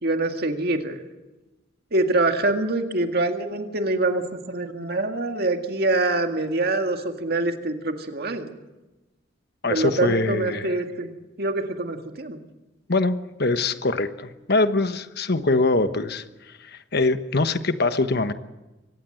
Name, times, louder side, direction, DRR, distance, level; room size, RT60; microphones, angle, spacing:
voice 1, 0.0-1.0 1.9-8.6 9.7-11.1 11.4-12.4, right 2 dB, 55° right, 5 dB, 2.0 m, -25 dB
voice 2, 9.6-10.7 12.9-16.2 16.6-18.3, left 3 dB, 60° left, 10 dB, 1.2 m, -23 dB
24.0 x 18.5 x 7.9 m, 1.1 s
head